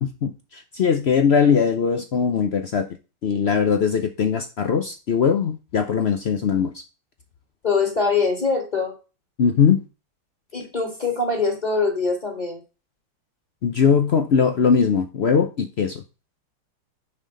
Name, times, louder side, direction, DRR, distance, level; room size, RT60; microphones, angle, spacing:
voice 1, 0.0-2.9 3.2-6.7 9.4-9.8 13.6-16.0, left 6 dB, 70° left, 0.6 m, -20 dB
voice 2, 7.6-8.9 10.5-12.6, left 4 dB, 25° left, 1.8 m, -23 dB
6.5 x 5.7 x 5.1 m
omnidirectional pair, 2.0 m